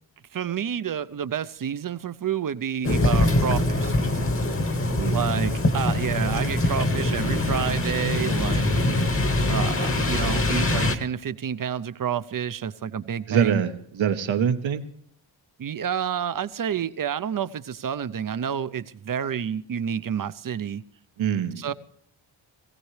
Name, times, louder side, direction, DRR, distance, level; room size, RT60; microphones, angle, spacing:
voice 1, 0.3-4.4 5.1-8.8 9.5-13.6 15.6-20.8 21.6-21.7, right 8 dB, 45° right, 15 dB, 0.6 m, -29 dB
sound 1, 2.8-11.0, left 2 dB, 25° left, 1.1 m, -23 dB
voice 2, 4.9-5.3 13.3-14.8 21.2-21.7, right 8 dB, 75° right, 10 dB, 1.1 m, -24 dB
18.5 x 16.0 x 3.2 m, 0.67 s
wide cardioid pair, 120°, 47 cm